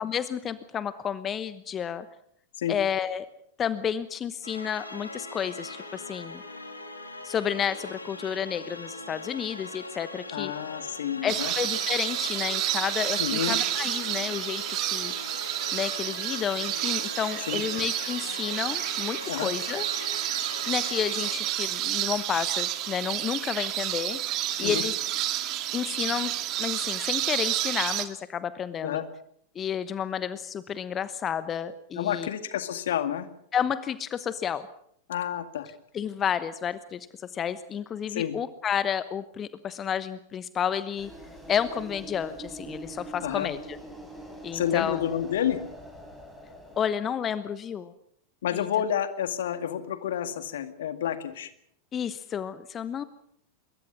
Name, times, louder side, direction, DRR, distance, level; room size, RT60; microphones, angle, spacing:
voice 1, 0.0-2.1 2.7-3.3 3.6-6.4 7.2-10.5 11.2-15.1 15.7-19.8 20.7-24.2 24.6-24.9 25.7-26.3 26.6-29.0 29.5-32.3 33.5-34.6 35.9-41.1 41.5-43.8 44.4-45.0 46.8-47.9 48.5-48.7 51.9-53.0, left 8 dB, 25° left, 14 dB, 1.0 m, -31 dB
sound 1, 4.4-21.4, left 2 dB, 80° left, 3.1 m, -41 dB
voice 2, 10.3-11.5 13.2-13.6 17.5-17.6 19.3-19.5 24.6-24.8 28.8-29.1 32.0-33.3 35.1-35.7 38.1-38.4 43.2-43.5 44.5-45.6 48.4-51.5, left 10 dB, 60° left, 10 dB, 2.1 m, -29 dB
sound 2, 11.3-28.0, right 13 dB, 40° right, 2.2 m, -30 dB
sound 3, 41.0-46.8, right 1 dB, 5° left, 7.2 m, -43 dB
25.5 x 22.5 x 6.2 m, 0.69 s
figure-of-eight pair, 90°, 0 cm